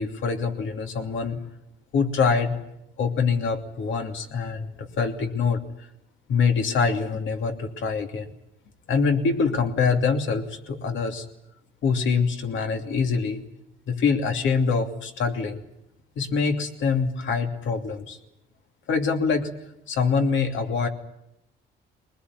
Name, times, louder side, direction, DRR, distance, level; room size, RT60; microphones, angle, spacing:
voice 1, 0.0-1.4 1.9-2.6 3.0-5.6 6.3-8.3 8.9-11.2 11.8-13.4 13.9-15.6 16.2-18.2 18.9-19.5 19.9-20.9, left 5 dB, 75° left, 4 dB, 2.9 m, -24 dB
22.5 x 20.0 x 9.7 m, 0.83 s
cardioid pair, 90°, 20 cm